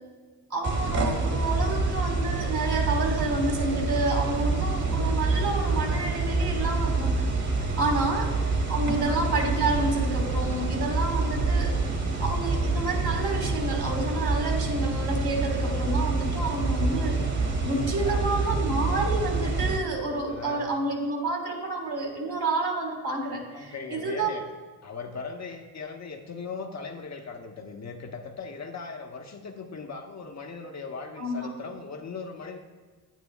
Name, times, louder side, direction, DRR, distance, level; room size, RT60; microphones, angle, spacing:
voice 1, 0.5-7.2 7.8-8.3 8.7-11.7 12.2-24.3 31.2-31.5, right 2 dB, 60° right, 1 dB, 2.0 m, -29 dB
sound 1, 0.6-19.8, right 3 dB, 40° right, 1.6 m, -27 dB
voice 2, 8.9-9.2 17.8-18.3 20.3-20.7 23.5-24.4 24.8-32.6, left 4 dB, 40° left, 3 dB, 0.9 m, -39 dB
9.2 x 9.1 x 2.3 m, 1.4 s
supercardioid pair, 60°, 43 cm